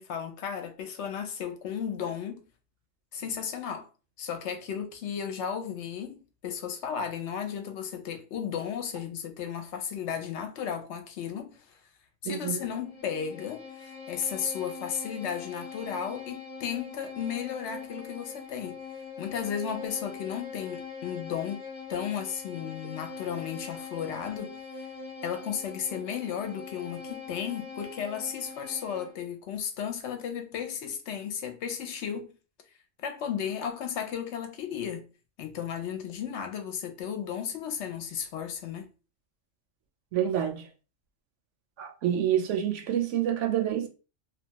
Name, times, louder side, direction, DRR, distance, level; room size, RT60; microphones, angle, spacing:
voice 1, 0.0-2.4 3.1-3.9 4.2-11.8 12.2-18.8 19.2-21.6 21.9-24.9 25.2-32.3 33.0-35.1 35.4-38.9, left 8 dB, 70° left, 0.8 m, -34 dB
voice 2, 12.2-12.6 40.1-40.7 41.8-43.9, right 10 dB, 70° right, 0.9 m, -27 dB
Bowed string instrument, 12.6-29.2, left 5 dB, 35° left, 0.5 m, -42 dB
2.7 x 2.2 x 2.8 m
omnidirectional pair, 1.3 m